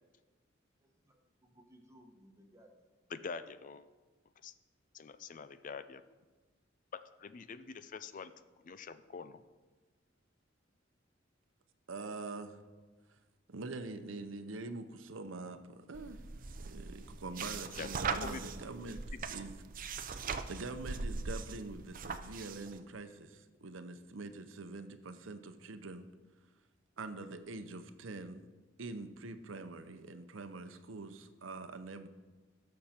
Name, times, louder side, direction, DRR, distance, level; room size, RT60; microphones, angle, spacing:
voice 1, 0.8-3.2, equal, 15° right, 2 dB, 1.3 m, -62 dB
voice 2, 3.1-3.8 4.4-4.5 4.9-6.0 6.9-8.3 8.6-9.4 17.3-17.5 17.8-18.4, left 5 dB, 45° left, 13 dB, 0.4 m, -45 dB
voice 3, 11.9-12.6 13.5-16.2 16.6-19.0 19.3-19.5 20.0-26.1 27.0-28.5 28.8-32.1, right 3 dB, 85° right, 9 dB, 0.8 m, -45 dB
sound 1, 15.9-22.8, right 4 dB, 45° right, 0.6 m, -40 dB
16.5 x 6.6 x 4.4 m, 1.3 s
head